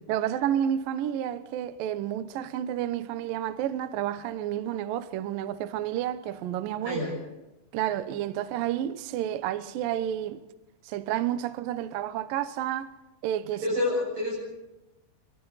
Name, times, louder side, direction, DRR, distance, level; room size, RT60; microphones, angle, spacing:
voice 1, 0.1-7.0 7.7-10.4 10.8-13.0 13.2-13.6, right 11 dB, 85° right, 2.0 m, -30 dB
voice 2, 6.8-7.1 13.6-14.4, left 2 dB, 35° right, 7.8 m, -28 dB
26.5 x 24.5 x 4.1 m
omnidirectional pair, 5.6 m